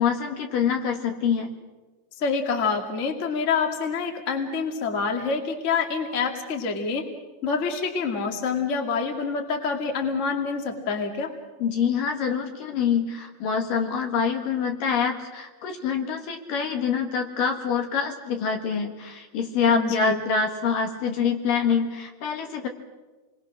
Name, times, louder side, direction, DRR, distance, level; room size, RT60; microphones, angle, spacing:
voice 1, 0.0-1.5 11.6-22.7, left 6 dB, 60° left, 4 dB, 3.1 m, -25 dB
voice 2, 2.2-7.0 7.4-11.3 19.7-20.2, left 5 dB, 25° left, 4 dB, 1.8 m, -27 dB
28.5 x 22.0 x 6.4 m, 1.2 s
omnidirectional pair, 4.6 m